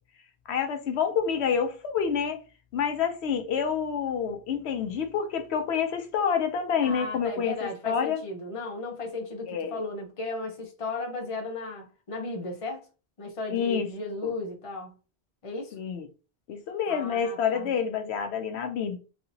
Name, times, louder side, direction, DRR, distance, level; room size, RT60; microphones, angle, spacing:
voice 1, 0.5-2.4 2.7-8.2 9.5-9.8 13.5-13.9 14.2-14.3 15.7-16.1 16.5-19.0, left 7 dB, 85° left, 0.9 m, -28 dB
voice 2, 6.8-12.9 13.2-14.9 15.4-15.7 16.9-17.7, left 2 dB, 35° left, 0.8 m, -35 dB
3.2 x 2.8 x 2.7 m
omnidirectional pair, 1.1 m